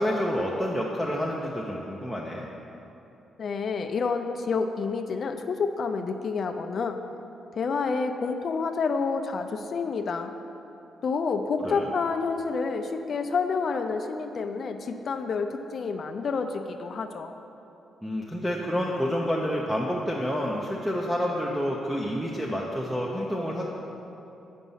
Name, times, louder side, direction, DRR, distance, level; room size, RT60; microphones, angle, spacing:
voice 1, 0.0-2.5 11.6-11.9 18.0-23.7, equal, 5° right, -2 dB, 0.6 m, -28 dB
voice 2, 3.4-7.0 7.5-10.3 11.0-17.3, left 4 dB, 45° left, 6 dB, 0.4 m, -29 dB
8.1 x 5.2 x 5.5 m, 2.9 s
cardioid pair, 150°, 0 cm